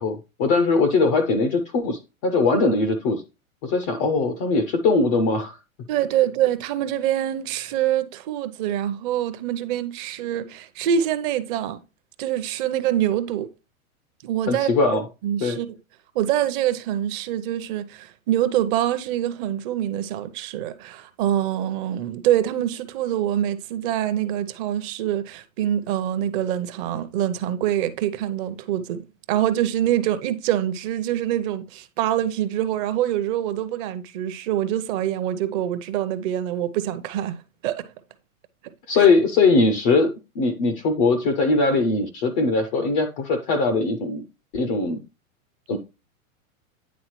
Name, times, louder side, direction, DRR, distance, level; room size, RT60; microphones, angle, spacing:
voice 1, 0.0-3.2 3.6-5.6 14.5-15.0 15.4-15.6 38.9-44.2 44.5-45.0 45.7-45.8, left 3 dB, 20° left, 0.3 m, -21 dB
voice 2, 5.9-11.8 12.2-13.5 14.2-15.8 16.1-37.9, right 11 dB, 35° right, 0.7 m, -25 dB
9.5 x 3.6 x 3.0 m
hypercardioid pair, 135°, 42 cm